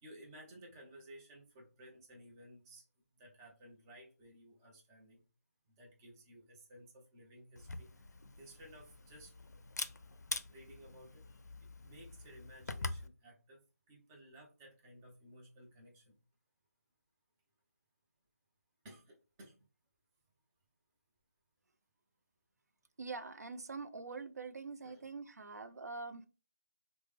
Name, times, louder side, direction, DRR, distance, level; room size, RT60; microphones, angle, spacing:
voice 1, 0.0-2.8 3.2-5.2 5.8-7.9 8.4-9.6 9.9-10.0 10.5-13.6 13.9-16.1 18.8-19.6 24.8-25.1, equal, 15° right, 0 dB, 0.5 m, -57 dB
Camera, 7.6-13.1, left 3 dB, 85° left, 0.4 m, -45 dB
voice 2, 23.0-26.3, right 4 dB, 75° right, 10 dB, 0.4 m, -44 dB
3.1 x 2.0 x 3.2 m, 0.33 s
figure-of-eight pair, 160°, 9 cm